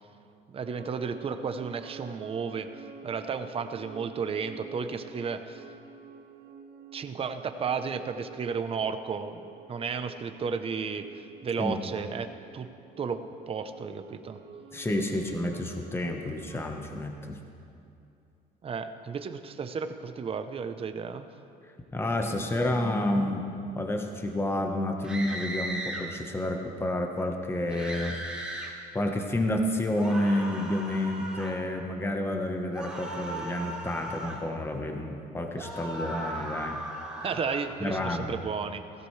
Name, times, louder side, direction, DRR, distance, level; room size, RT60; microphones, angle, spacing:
voice 1, 0.5-5.6 6.9-9.4 9.7-12.7 13.0-13.2 13.5-14.4 18.6-21.3 37.2-38.8, right 5 dB, 35° right, 8 dB, 0.8 m, -33 dB
sound 1, 0.6-16.7, right 5 dB, 85° right, 1.2 m, -50 dB
voice 2, 14.7-17.4 21.9-23.5 23.7-28.2 28.9-36.8 37.8-38.4, left 1 dB, 15° left, 3 dB, 1.2 m, -30 dB
sound 2, 25.0-26.0 27.7-28.7 30.0-31.6 32.7-34.4 35.5-37.7, right 1 dB, 5° right, 3.7 m, -37 dB
16.5 x 15.0 x 3.3 m, 2.6 s
cardioid pair, 110°, 17 cm